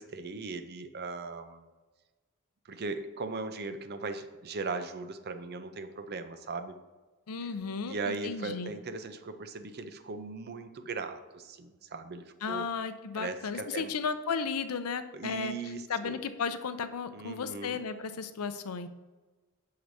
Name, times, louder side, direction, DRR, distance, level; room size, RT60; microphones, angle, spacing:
voice 1, 0.0-1.7 2.6-6.8 7.9-12.7 13.1-13.9 15.1-16.2 17.1-17.8, right 3 dB, 50° right, 9 dB, 0.6 m, -38 dB
voice 2, 7.3-8.7 12.4-15.5 15.9-18.9, left 5 dB, 90° left, 11 dB, 0.5 m, -34 dB
7.7 x 6.7 x 2.7 m, 1.2 s
head